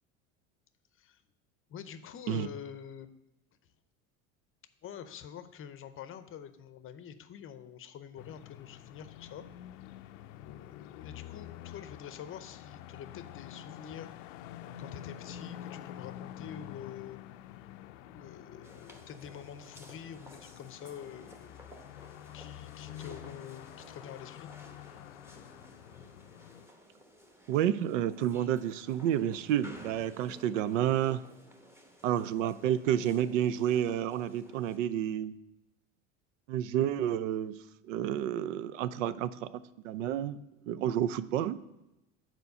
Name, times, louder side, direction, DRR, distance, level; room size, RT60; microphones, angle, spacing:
voice 1, 1.7-3.1 4.8-9.5 10.4-14.1 14.8-17.2 18.1-21.6 22.3-24.5 30.0-30.1, left 8 dB, 35° left, 11 dB, 0.6 m, -46 dB
sound 1, 8.2-26.7, left 12 dB, 80° left, 0.5 m, -48 dB
sound 2, 18.6-34.8, equal, 5° right, 0.9 m, -55 dB
voice 2, 27.5-31.2 32.0-35.4 36.5-37.6 37.8-40.4 40.7-41.6, right 10 dB, 90° right, 15 dB, 0.5 m, -30 dB
6.8 x 4.5 x 6.7 m, 0.90 s
supercardioid pair, 95°, 37 cm